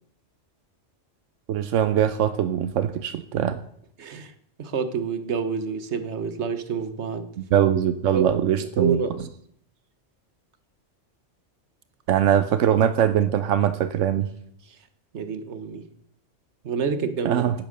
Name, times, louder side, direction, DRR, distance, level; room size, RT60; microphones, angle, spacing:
voice 1, 1.5-3.6 7.5-9.0 12.1-14.3 17.2-17.5, right 9 dB, 90° right, 1.1 m, -21 dB
voice 2, 4.0-4.3 4.6-7.3 8.1-8.3 8.6-9.3 14.7-14.8 15.1-15.9 16.6-17.4, right 6 dB, 65° right, 1.4 m, -28 dB
10.5 x 10.5 x 6.6 m
omnidirectional pair, 1.3 m